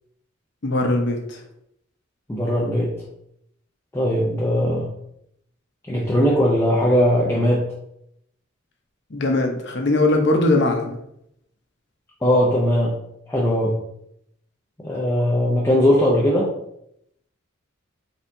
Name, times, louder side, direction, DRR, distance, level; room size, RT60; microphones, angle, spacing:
voice 1, 0.6-1.4 9.1-11.0, left 2 dB, 55° left, 3 dB, 0.9 m, -20 dB
voice 2, 2.3-2.9 3.9-4.9 5.9-7.7 12.2-12.9 13.3-13.7 14.8-16.5, equal, 10° left, -5 dB, 0.6 m, -19 dB
4.3 x 4.2 x 2.7 m, 0.76 s
head